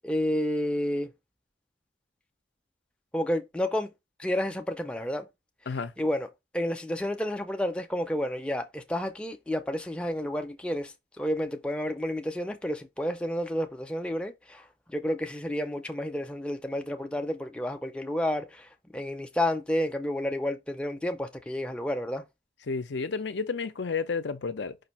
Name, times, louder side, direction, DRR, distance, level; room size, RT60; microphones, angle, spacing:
voice 1, 0.0-1.1 3.1-3.9 4.2-5.3 6.0-6.3 6.5-22.2, left 1 dB, 5° left, 0.4 m, -30 dB
voice 2, 22.7-24.8, left 5 dB, 85° left, 0.6 m, -31 dB
5.2 x 2.5 x 4.1 m
head